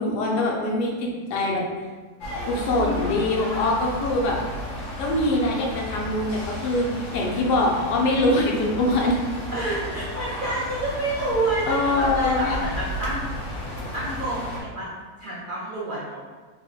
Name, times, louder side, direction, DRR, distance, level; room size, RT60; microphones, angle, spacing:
voice 1, 0.0-1.6 2.4-4.4 5.0-9.2 11.7-12.6, left 2 dB, 80° left, -2 dB, 1.2 m, -23 dB
sound 1, 2.2-14.6, left 1 dB, 60° left, 1.0 m, -33 dB
voice 2, 9.5-13.2 13.7-14.9 15.2-16.2, right 2 dB, 70° right, -8 dB, 0.4 m, -28 dB
3.5 x 2.1 x 3.8 m, 1.4 s
omnidirectional pair, 1.8 m